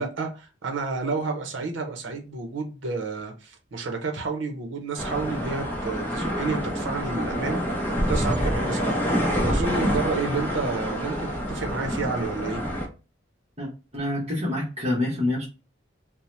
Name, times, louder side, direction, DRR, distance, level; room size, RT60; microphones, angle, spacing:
voice 1, 0.0-9.1 9.4-12.6, right 4 dB, 70° right, 0.6 m, -30 dB
sound 1, 5.0-12.9, equal, 10° left, 0.6 m, -27 dB
voice 2, 13.6-15.4, left 1 dB, 35° right, 0.9 m, -27 dB
2.7 x 2.0 x 3.1 m
head